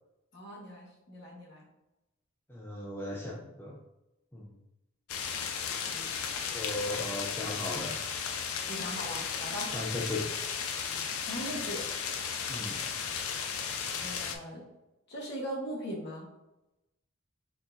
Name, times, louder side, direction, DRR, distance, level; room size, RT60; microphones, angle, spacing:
voice 1, 0.3-1.6 5.9-6.3 8.7-9.7 11.2-11.8 12.5-12.9 14.0-14.6 15.1-16.3, equal, 55° left, -3 dB, 1.2 m, -40 dB
voice 2, 2.5-3.8 4.3-4.5 6.4-7.9 9.7-10.3 12.5-12.8, left 2 dB, 10° left, -3 dB, 0.4 m, -37 dB
sound 1, 5.1-14.4, left 6 dB, 90° left, 0.4 m, -35 dB
3.8 x 3.6 x 2.6 m, 0.93 s
head